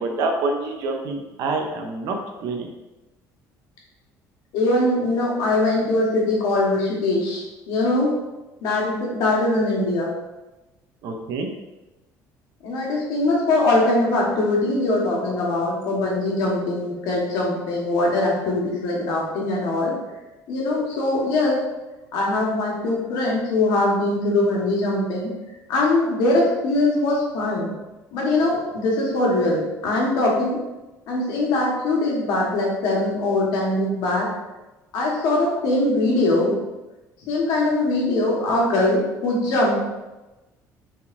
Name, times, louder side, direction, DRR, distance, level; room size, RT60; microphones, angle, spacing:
voice 1, 0.0-2.7 11.0-11.5, right 3 dB, 65° right, 3 dB, 0.7 m, -27 dB
voice 2, 4.5-8.1 8.6-10.1 12.6-20.0 20.5-21.6 22.1-25.3 25.7-27.7 28.1-30.6 31.1-34.3 34.9-36.6 37.3-39.7, left 2 dB, 75° left, -3 dB, 1.3 m, -22 dB
4.7 x 3.6 x 2.6 m, 1.1 s
cardioid pair, 155°, 7 cm